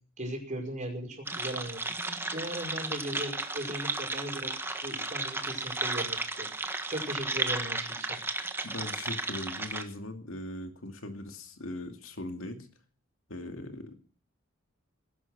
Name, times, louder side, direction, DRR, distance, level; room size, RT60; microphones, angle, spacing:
voice 1, 0.2-1.9 2.3-4.5 4.8-8.2, right 1 dB, 35° right, 2 dB, 5.5 m, -38 dB
sound 1, 1.3-9.8, right 2 dB, 10° right, 1.4 m, -34 dB
voice 2, 8.6-12.7 13.3-13.9, left 1 dB, 75° left, 5 dB, 2.5 m, -40 dB
19.0 x 11.0 x 5.9 m, 0.41 s
head